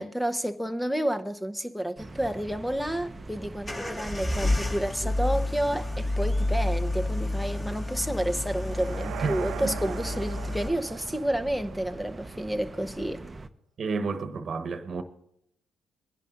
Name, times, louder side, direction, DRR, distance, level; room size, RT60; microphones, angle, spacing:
voice 1, 0.0-13.2, right 1 dB, ahead, 0.9 m, -30 dB
sound 1, 2.0-13.5, right 2 dB, 25° right, 0.8 m, -43 dB
sound 2, 3.6-10.7, left 1 dB, 25° left, 3.2 m, -30 dB
sound 3, 8.6-12.7, right 11 dB, 70° right, 0.5 m, -40 dB
voice 2, 13.8-15.0, right 4 dB, 50° right, 1.2 m, -30 dB
23.0 x 11.0 x 2.6 m
hypercardioid pair, 55°, 0 cm